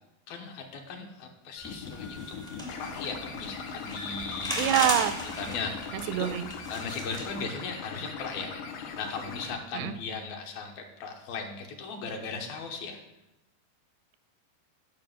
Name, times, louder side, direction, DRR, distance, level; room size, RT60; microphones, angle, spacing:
voice 1, 0.3-2.4 2.7-4.8 5.4-5.9 6.7-8.5 8.9-13.0, left 4 dB, 70° left, 3 dB, 2.8 m, -37 dB
sound 1, 1.6-9.6, left 5 dB, 90° left, 3.4 m, -40 dB
sound 2, 1.6-7.4, equal, 5° left, 0.4 m, -37 dB
voice 2, 4.6-5.2 5.9-6.5 9.7-9.9, right 12 dB, 85° right, 13 dB, 2.8 m, -26 dB
11.5 x 5.9 x 7.7 m, 0.94 s
omnidirectional pair, 4.8 m